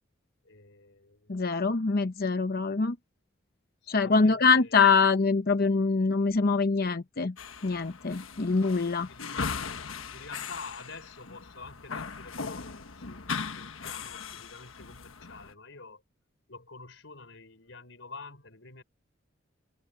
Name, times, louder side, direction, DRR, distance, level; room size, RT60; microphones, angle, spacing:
voice 1, 0.4-1.6 3.8-4.8 8.4-8.5 9.1-9.7 10.1-16.0 16.5-18.8, left 4 dB, 65° left, 6.0 m, -48 dB
voice 2, 1.3-3.0 3.9-7.3 7.6-9.1, left 4 dB, 50° left, 0.7 m, -24 dB
sound 1, 7.4-15.5, left 5 dB, 90° left, 1.3 m, -39 dB
head